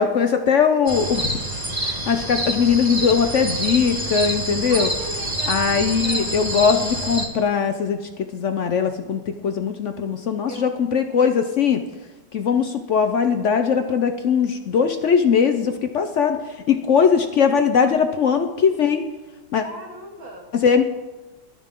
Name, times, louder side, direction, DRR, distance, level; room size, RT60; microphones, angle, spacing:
voice 1, 0.0-1.4 1.8-4.9 5.5-8.0 8.3-11.8 12.3-16.4 16.7-19.0 19.5-19.6 20.5-20.8, left 6 dB, 70° left, 7 dB, 0.7 m, -20 dB
sound 1, 0.9-7.3, right 1 dB, 20° right, 1.9 m, -27 dB
voice 2, 4.7-6.4 10.5-10.7 19.6-20.5, right 1 dB, 85° right, -1 dB, 3.3 m, -37 dB
20.0 x 12.0 x 3.7 m, 1.2 s
omnidirectional pair, 2.1 m